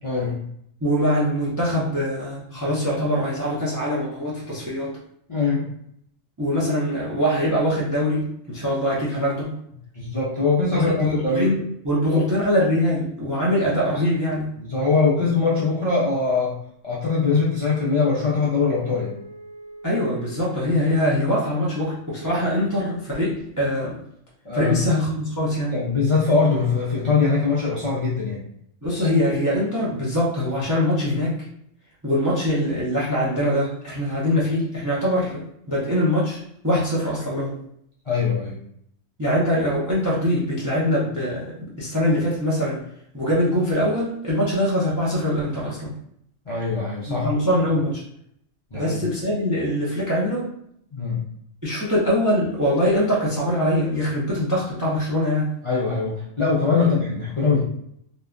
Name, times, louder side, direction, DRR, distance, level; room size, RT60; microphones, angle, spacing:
voice 1, 0.0-0.4 2.5-2.7 5.3-5.7 9.9-11.5 12.1-12.2 14.6-16.5 16.8-19.1 24.4-24.8 25.7-28.4 38.1-38.6 46.5-47.3 48.7-49.0 50.9-51.2 55.6-57.6, left 4 dB, 40° left, -7 dB, 0.4 m, -22 dB
voice 2, 0.8-5.0 6.4-9.5 10.7-14.5 19.8-24.0 24.5-25.7 28.8-31.4 32.0-37.6 39.2-42.8 43.1-45.9 47.1-48.0 48.7-50.5 51.6-55.5 56.8-56.9, equal, 30° right, -6 dB, 0.3 m, -23 dB
Wind instrument woodwind instrument, 17.3-21.4, right 2 dB, 85° right, 1.0 m, -43 dB
3.0 x 2.2 x 2.4 m, 0.70 s
omnidirectional pair, 1.3 m